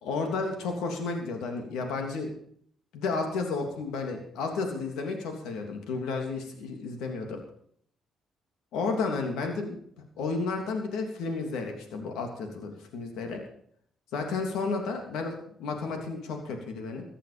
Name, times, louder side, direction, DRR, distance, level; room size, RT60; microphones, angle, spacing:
voice 1, 0.0-2.3 2.9-7.4 8.7-9.7 10.2-13.4 14.1-17.0, left 4 dB, 90° left, 3 dB, 3.2 m, -32 dB
15.5 x 12.5 x 5.2 m, 0.63 s
cardioid pair, 90°, 0 cm